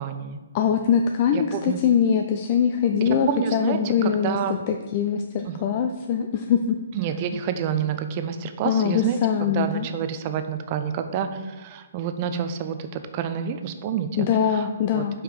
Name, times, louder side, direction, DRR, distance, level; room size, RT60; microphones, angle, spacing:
voice 1, 0.0-0.4 1.3-1.8 3.3-4.6 5.4-5.7 6.9-15.2, right 8 dB, 35° right, 9 dB, 0.5 m, -29 dB
voice 2, 0.5-4.4 4.7-6.8 8.6-9.9 14.2-15.1, left 7 dB, 35° left, 5 dB, 0.4 m, -22 dB
5.0 x 4.9 x 4.5 m, 1.2 s
figure-of-eight pair, 130°, 0 cm